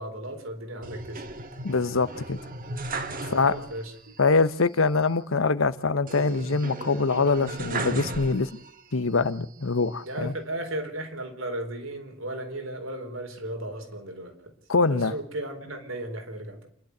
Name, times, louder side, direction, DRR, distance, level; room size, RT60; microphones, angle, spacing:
voice 1, 0.0-1.4 3.2-4.2 10.0-14.5 14.9-16.7, right 1 dB, 85° right, 4.2 m, -35 dB
sound 1, 0.8-3.9 4.2-4.3 6.1-8.8 9.3-10.2, right 2 dB, 45° right, 1.7 m, -36 dB
voice 2, 1.6-2.4 3.3-3.5 4.2-8.5 8.9-10.3 14.7-15.1, left 4 dB, 80° left, 1.0 m, -24 dB
27.5 x 12.0 x 8.0 m
head